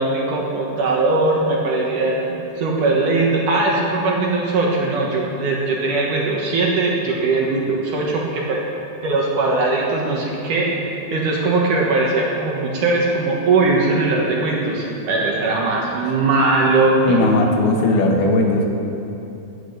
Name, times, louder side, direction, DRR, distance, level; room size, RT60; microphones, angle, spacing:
voice 1, 0.0-8.6 9.0-17.2, right 3 dB, 60° right, -2 dB, 2.2 m, -20 dB
voice 2, 17.0-18.7, left 2 dB, 65° left, 1 dB, 3.1 m, -17 dB
16.5 x 8.4 x 6.9 m, 2.8 s
omnidirectional pair, 5.3 m